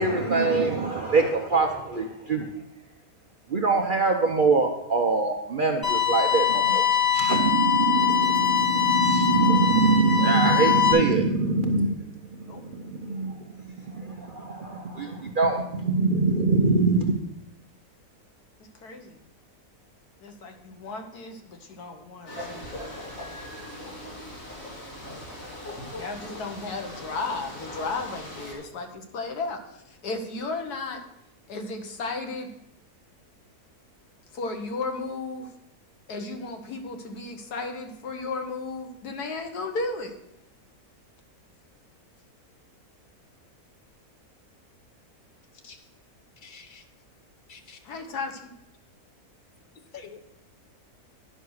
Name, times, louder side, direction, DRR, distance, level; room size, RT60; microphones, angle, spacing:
voice 1, 0.0-2.5 3.5-12.1 12.4-13.4 13.9-17.1, right 4 dB, 50° right, 3 dB, 0.6 m, -24 dB
sound 1, 5.8-10.9, left 9 dB, 15° left, 2.8 m, -23 dB
voice 2, 18.8-19.2 20.2-22.9 25.9-31.0 31.5-32.5 34.3-35.5 36.1-40.2 45.6-45.8 47.8-48.5, left 3 dB, 90° left, 6 dB, 1.6 m, -34 dB
sound 2, 22.3-28.5, left 1 dB, 60° left, 2.7 m, -39 dB
voice 3, 46.4-46.8 47.5-47.8 49.9-50.2, left 6 dB, 40° left, 7 dB, 0.9 m, -46 dB
10.0 x 5.7 x 6.3 m, 0.83 s
omnidirectional pair, 1.6 m